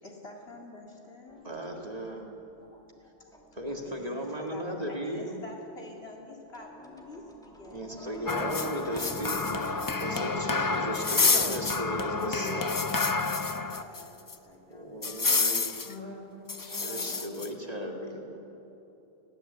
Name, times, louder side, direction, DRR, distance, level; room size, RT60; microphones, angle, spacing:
voice 1, 0.0-1.5 2.6-2.9 3.2-3.4 3.8-8.3 13.2-15.3, left 2 dB, 80° left, 0 dB, 2.6 m, -48 dB
sound 1, 1.3-3.9 6.5-14.4 15.0-15.6, right 1 dB, 5° left, 2.4 m, -49 dB
voice 2, 1.4-2.3 3.5-5.3 7.7-9.8 10.0-12.8 14.7-15.8 16.6-18.1, equal, 40° right, 1 dB, 2.1 m, -36 dB
sound 2, 8.3-14.0 14.3-14.4 15.0-15.9 16.5-17.5, left 4 dB, 30° left, 0.4 m, -29 dB
voice 3, 9.1-9.7 10.0-10.7 11.4-13.1 15.8-16.2 16.7-18.4, left 2 dB, 45° left, -2 dB, 5.4 m, -42 dB
20.5 x 17.5 x 8.1 m, 3.0 s
omnidirectional pair, 1.1 m